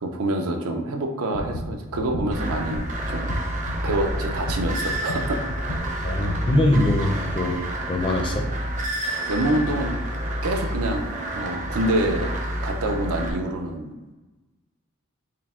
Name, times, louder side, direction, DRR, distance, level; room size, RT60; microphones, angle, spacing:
voice 1, 0.0-3.3 3.8-5.4 9.3-9.9 10.4-11.1 11.3-12.3 12.6-13.9, right 1 dB, 85° right, 3 dB, 0.5 m, -26 dB
sound 1, 1.3-7.6, left 1 dB, 85° left, 0.5 m, -33 dB
sound 2, 2.3-13.3, right 1 dB, 35° right, 0.5 m, -29 dB
voice 2, 6.0-7.6 7.9-8.5, left 1 dB, 25° left, 2 dB, 0.4 m, -22 dB
4.6 x 2.1 x 3.5 m, 1.2 s
head